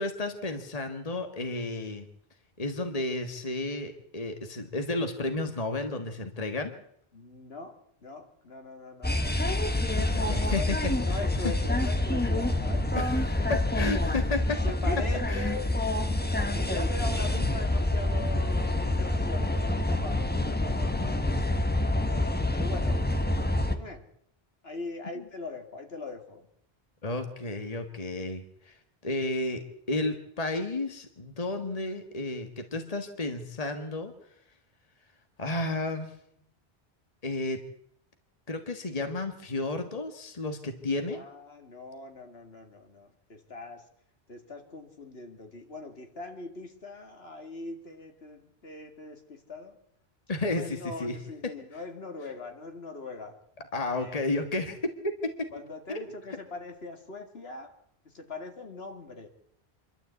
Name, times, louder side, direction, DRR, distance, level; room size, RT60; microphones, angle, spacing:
voice 1, 0.0-2.1 2.6-6.7 9.9-10.6 13.0-13.1 13.5-14.6 15.3-15.6 16.3-16.5 25.1-25.3 27.0-28.7 29.0-34.1 35.4-36.1 37.2-37.6 38.5-41.2 50.3-51.1 53.7-54.8 55.2-55.5 55.9-56.0, left 2 dB, 35° left, 6 dB, 1.7 m, -32 dB
voice 2, 7.1-9.4 10.1-13.5 14.6-15.7 16.4-21.5 22.0-23.0 23.7-24.1 24.6-26.5 41.1-43.9 44.3-49.8 50.5-53.4 53.9-54.4 55.5-57.7 58.0-59.3, left 3 dB, 70° left, 5 dB, 2.5 m, -41 dB
sound 1, 9.0-23.8, left 1 dB, 10° left, 1.1 m, -27 dB
25.5 x 12.5 x 8.2 m, 0.72 s
omnidirectional pair, 1.1 m